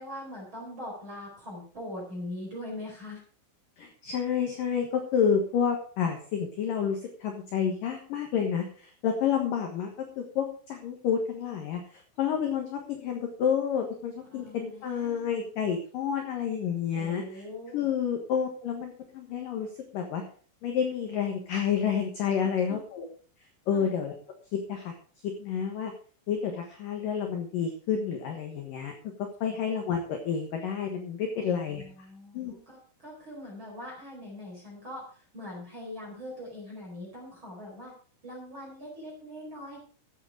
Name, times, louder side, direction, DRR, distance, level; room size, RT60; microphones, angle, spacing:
voice 1, 0.0-3.2 14.3-15.5 16.9-17.9 22.4-22.8 23.7-23.9 31.3-37.9 38.2-39.8, left 1 dB, 25° right, -3 dB, 4.7 m, -42 dB
voice 2, 3.8-17.4 17.7-19.7 19.9-20.2 20.6-23.0 23.7-24.2 24.5-24.9 25.2-25.9 26.3-28.9 29.4-31.8 32.3-32.6, left 7 dB, 65° left, 3 dB, 2.2 m, -29 dB
13.5 x 8.1 x 4.8 m, 0.43 s
omnidirectional pair, 6.0 m